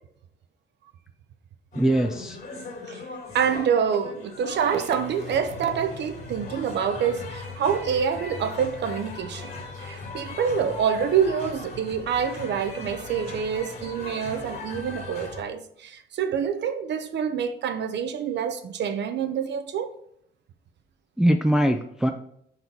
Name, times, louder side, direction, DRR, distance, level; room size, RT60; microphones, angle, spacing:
sound 1, 1.7-15.4, left 3 dB, 50° left, 2.2 m, -39 dB
voice 1, 1.7-2.4 21.2-22.1, right 1 dB, ahead, 0.4 m, -21 dB
voice 2, 3.3-19.9, right 7 dB, 60° right, 0.6 m, -26 dB
4.4 x 4.1 x 5.3 m
cardioid pair, 90°, 20 cm